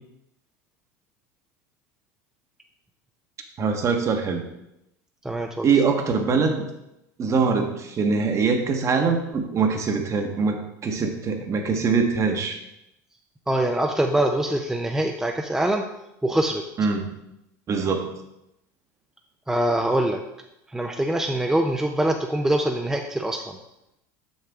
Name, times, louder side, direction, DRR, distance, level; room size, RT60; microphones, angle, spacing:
voice 1, 3.6-4.4 5.6-6.6 7.2-10.6 10.8-12.6 16.8-17.1 17.7-18.1, right 5 dB, 35° right, 5 dB, 1.1 m, -23 dB
voice 2, 5.2-5.7 13.5-15.8 16.2-16.6 19.5-20.2 20.7-23.6, right 1 dB, 5° right, 2 dB, 0.6 m, -24 dB
6.5 x 6.5 x 3.6 m, 0.85 s
supercardioid pair, 100°, 9 cm